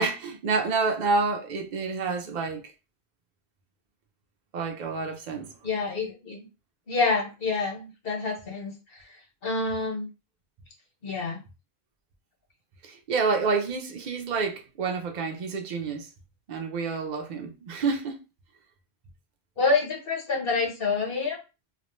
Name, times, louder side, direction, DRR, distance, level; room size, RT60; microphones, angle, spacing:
voice 1, 0.0-2.6 4.5-5.5 12.8-16.1 16.5-18.2, right 4 dB, 50° right, 0.6 m, -28 dB
voice 2, 5.6-6.5 6.9-8.7 9.4-10.1 11.0-11.4 19.6-21.4, left 4 dB, 60° left, 1.1 m, -27 dB
2.4 x 2.1 x 3.0 m
omnidirectional pair, 1.1 m